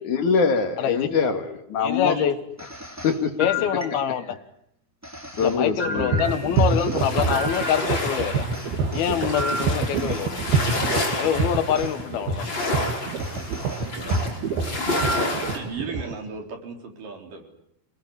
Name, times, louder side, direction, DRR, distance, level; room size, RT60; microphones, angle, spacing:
voice 1, 0.0-2.2 3.0-3.3 5.4-6.2, left 5 dB, 60° left, 3.1 m, -23 dB
voice 2, 0.8-1.1 1.8-2.4 3.4-4.4 5.4-8.4 8.9-10.5 11.2-12.6, left 9 dB, 80° left, 3.3 m, -25 dB
sound 1, 2.6-4.4 5.0-8.2 8.5-11.1 11.7-12.0 12.6-12.8 13.2-14.3 14.9-15.5, equal, 5° right, 2.9 m, -34 dB
sound 2, 5.9-16.1, right 4 dB, 80° right, 4.0 m, -27 dB
sound 3, 6.2-15.6, left 2 dB, 30° left, 5.6 m, -30 dB
voice 3, 15.5-17.5, right 4 dB, 60° right, 5.3 m, -36 dB
27.5 x 19.0 x 9.7 m
omnidirectional pair, 4.4 m